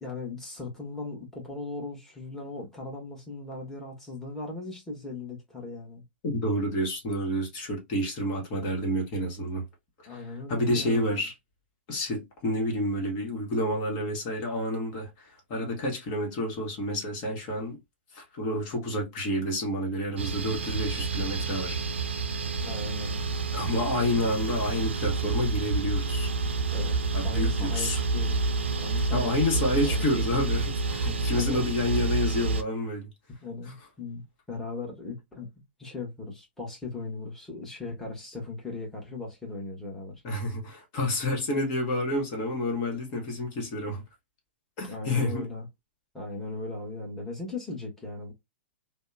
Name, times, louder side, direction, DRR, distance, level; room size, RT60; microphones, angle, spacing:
voice 1, 0.0-6.0 10.0-11.1 22.6-23.2 26.7-27.0 27.2-30.3 31.4-31.7 33.4-34.2 34.5-35.5 35.8-40.2 44.8-45.7 46.1-48.3, left 3 dB, 5° left, 1.1 m, -38 dB
voice 2, 6.2-9.6 10.1-10.2 10.5-11.3 11.9-17.8 18.1-21.8 23.5-26.3 27.1-28.0 29.1-33.1 40.2-44.0 44.8-45.5, left 1 dB, 45° left, 1.1 m, -29 dB
sound 1, 20.2-32.6, right 3 dB, 80° right, 0.4 m, -29 dB
2.7 x 2.0 x 2.3 m
hypercardioid pair, 115°, 6 cm